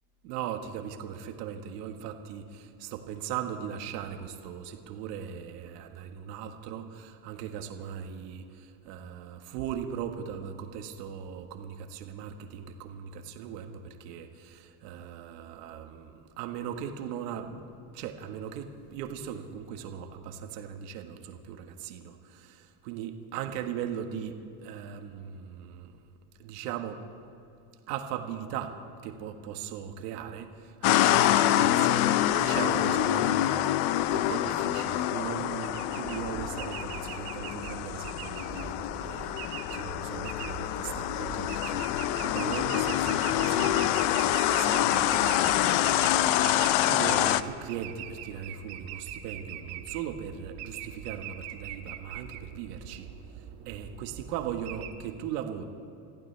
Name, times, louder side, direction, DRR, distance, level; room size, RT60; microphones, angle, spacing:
voice 1, 0.2-17.6 17.9-25.9 26.4-27.0 27.9-45.7 46.8-53.1 53.3-55.6, right 8 dB, 85° right, 5 dB, 1.7 m, -39 dB
sound 1, 30.8-47.4, left 13 dB, 55° left, 0.7 m, -26 dB
sound 2, 35.6-54.9, right 9 dB, 60° right, 1.5 m, -42 dB
27.5 x 15.0 x 3.4 m, 2.6 s
cardioid pair, 145°, 47 cm